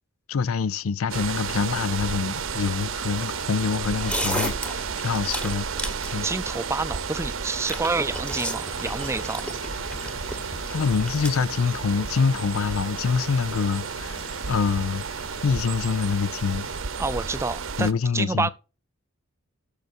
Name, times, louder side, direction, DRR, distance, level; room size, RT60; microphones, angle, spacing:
voice 1, 0.3-5.7 6.1-6.3 10.7-15.0 15.4-16.7 17.8-18.5, left 5 dB, 85° left, 0.5 m, -25 dB
sound 1, 1.1-17.9, right 6 dB, 65° right, 0.7 m, -32 dB
sound 2, 3.9-11.3, equal, 5° left, 1.4 m, -34 dB
voice 2, 6.2-9.4 17.0-18.5, right 3 dB, 15° right, 0.4 m, -28 dB
sound 3, 8.5-16.8, left 4 dB, 65° left, 1.2 m, -44 dB
16.5 x 6.6 x 2.6 m
head